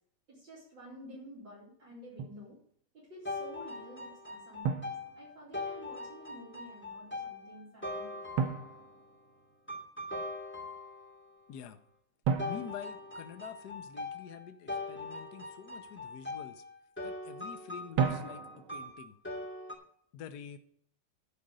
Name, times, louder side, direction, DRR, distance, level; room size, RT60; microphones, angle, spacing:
voice 1, 0.3-2.6 2.9-8.3, equal, 65° right, -7 dB, 5.2 m, -51 dB
Drum, 2.2-2.5 4.6-5.8 8.4-9.8 12.3-14.0 18.0-18.9, right 6 dB, 90° right, 1.9 m, -35 dB
sound 1, 3.2-9.0 9.7-11.3 12.4-19.7, left 2 dB, 5° left, 2.5 m, -41 dB
voice 2, 12.4-16.6 17.0-19.2 20.1-20.6, left 8 dB, 60° left, 8 dB, 1.3 m, -47 dB
11.5 x 5.1 x 8.0 m, 0.63 s
omnidirectional pair, 2.2 m